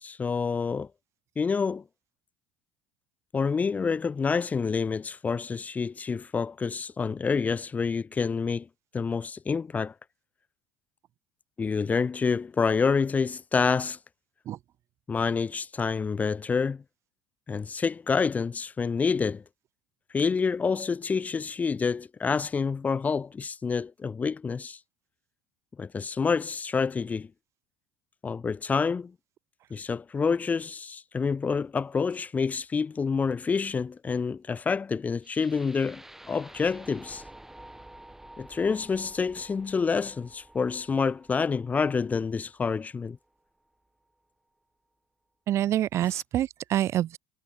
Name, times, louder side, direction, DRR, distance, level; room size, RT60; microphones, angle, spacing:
voice 1, 0.0-0.9 1.4-1.8 3.3-8.7 8.9-9.9 11.6-14.0 15.1-16.8 17.5-19.4 20.1-24.8 25.8-27.3 28.2-29.1 29.7-37.2 38.4-43.2, left 5 dB, 25° left, 2.0 m, -28 dB
sound 1, 35.2-43.2, right 1 dB, 5° right, 6.7 m, -50 dB
voice 2, 45.5-47.2, right 12 dB, 55° right, 2.2 m, -26 dB
supercardioid pair, 95°, 6 cm